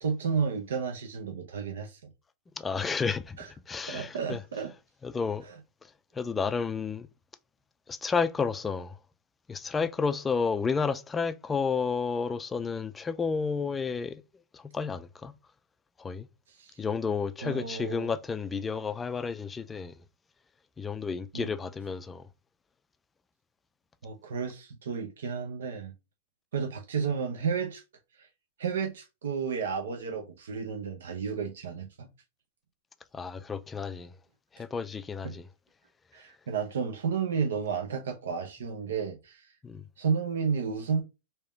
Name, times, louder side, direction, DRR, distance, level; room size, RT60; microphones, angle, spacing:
voice 1, 0.0-2.0 3.4-3.5 3.9-4.7 5.4-5.6 16.5-16.8 17.4-18.1 21.3-21.5 24.0-25.9 26.5-27.8 28.2-28.3 28.6-32.1 35.2-35.3 36.1-39.5 40.0-41.0, right 6 dB, 90° right, 0.7 m, -32 dB
voice 2, 2.6-3.4 3.7-4.4 5.0-5.4 6.1-7.1 7.9-8.9 9.5-14.2 14.5-15.3 16.0-16.3 16.8-19.9 20.8-22.2 33.1-34.1 34.5-35.4 39.6-39.8, left 5 dB, 15° left, 0.3 m, -31 dB
3.5 x 2.8 x 3.4 m
supercardioid pair, 140°, 0 cm